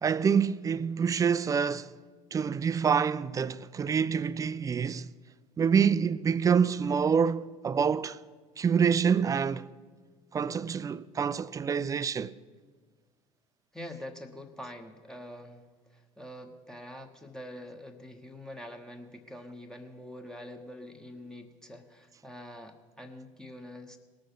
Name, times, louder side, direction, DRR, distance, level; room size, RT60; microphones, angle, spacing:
voice 1, 0.0-1.9 2.3-5.1 5.6-8.2 8.6-9.7 10.3-12.3, right 6 dB, 20° right, 0.4 m, -26 dB
voice 2, 13.7-15.6 15.9-24.0, left 1 dB, 5° left, 1.0 m, -45 dB
19.0 x 6.5 x 5.8 m
figure-of-eight pair, 65°, 17 cm